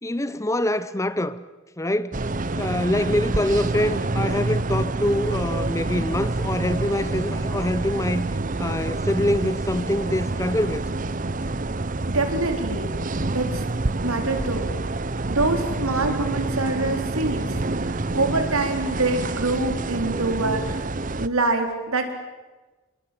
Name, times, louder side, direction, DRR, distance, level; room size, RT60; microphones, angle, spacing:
voice 1, 0.0-1.4 1.8-8.3 8.6-10.8, left 1 dB, 15° left, 0.7 m, -25 dB
sound 1, 2.1-21.3, right 2 dB, 35° right, 0.8 m, -27 dB
voice 2, 12.1-12.9 13.3-13.6 14.0-14.7 15.3-20.8 21.2-22.1, right 2 dB, 80° right, 4.1 m, -25 dB
28.5 x 23.5 x 7.8 m
head